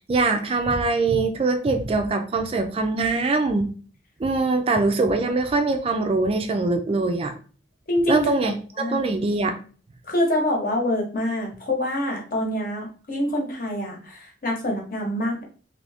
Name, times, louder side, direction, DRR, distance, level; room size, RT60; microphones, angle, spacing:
voice 1, 0.1-3.7 4.2-7.3 8.1-9.6, right 3 dB, 35° right, 6 dB, 0.4 m, -23 dB
voice 2, 7.9-8.3 8.8-9.0 10.1-15.4, left 1 dB, 50° left, 0 dB, 0.9 m, -25 dB
2.7 x 2.6 x 3.3 m, 0.40 s
head